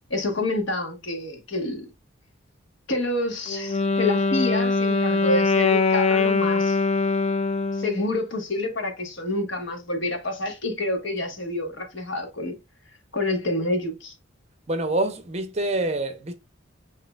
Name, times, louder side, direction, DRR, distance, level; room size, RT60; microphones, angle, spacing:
voice 1, 0.1-1.9 2.9-6.8 7.7-12.6 13.1-14.1, left 2 dB, 65° left, 1.3 m, -28 dB
Wind instrument woodwind instrument, 3.5-8.0, left 4 dB, 30° left, 0.4 m, -22 dB
voice 2, 14.7-16.3, right 2 dB, 30° right, 0.6 m, -26 dB
7.5 x 2.7 x 2.3 m
head